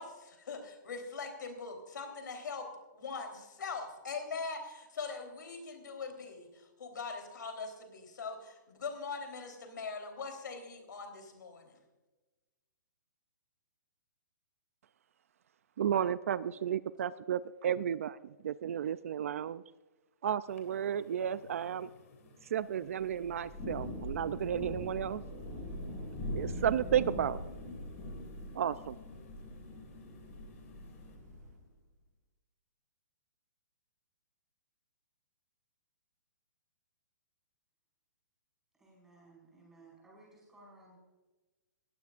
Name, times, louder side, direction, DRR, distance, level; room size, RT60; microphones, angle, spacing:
voice 1, 0.0-2.7 2.9-11.8, left 4 dB, 75° left, 5 dB, 3.6 m, -42 dB
voice 2, 15.8-19.6 20.2-21.9 22.5-25.2 26.3-27.4 28.5-29.0, right 9 dB, 45° right, 16 dB, 0.4 m, -33 dB
sound 1, 20.5-31.2, left 4 dB, 45° left, 3.2 m, -58 dB
Thunder / Rain, 23.1-31.6, left 1 dB, 20° left, 5.7 m, -42 dB
voice 3, 38.8-41.0, right 2 dB, 5° right, -5 dB, 5.1 m, -58 dB
20.0 x 15.5 x 2.5 m, 1.2 s
hypercardioid pair, 170°, 10 cm